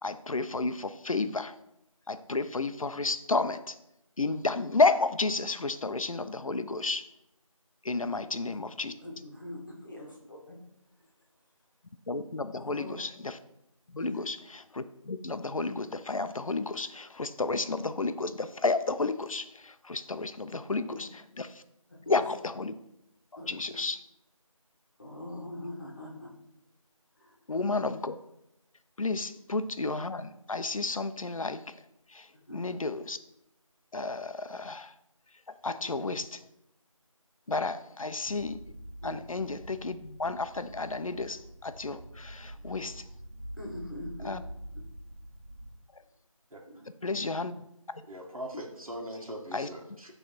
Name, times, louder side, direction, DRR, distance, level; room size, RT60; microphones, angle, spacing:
voice 1, 0.0-1.6 2.1-3.8 4.2-7.1 7.8-8.9 12.1-13.4 13.9-21.1 21.4-21.6 22.1-22.8 23.5-24.0 27.5-28.2 29.0-31.8 32.1-33.2 33.9-34.9 35.5-36.5 37.5-38.6 39.0-43.1 44.2-44.4 45.9-46.0 47.0-47.5 47.9-48.0 49.5-49.7, left 3 dB, 70° left, 11 dB, 0.5 m, -32 dB
voice 2, 8.4-10.6 11.0-11.1 12.6-12.9 14.0-14.1 20.9-21.0 21.9-22.2 23.4-23.6 25.0-26.3 27.2-27.4 32.3-32.6 35.6-35.8 39.0-39.1 43.5-44.3 46.7-46.8 47.1-47.3, left 1 dB, 35° left, -1 dB, 1.2 m, -43 dB
sound 1, 38.2-45.7, right 1 dB, 60° right, 1.4 m, -46 dB
voice 3, 48.1-50.1, equal, 75° right, -1 dB, 1.5 m, -41 dB
8.2 x 3.2 x 4.4 m, 0.83 s
figure-of-eight pair, 170°, 18 cm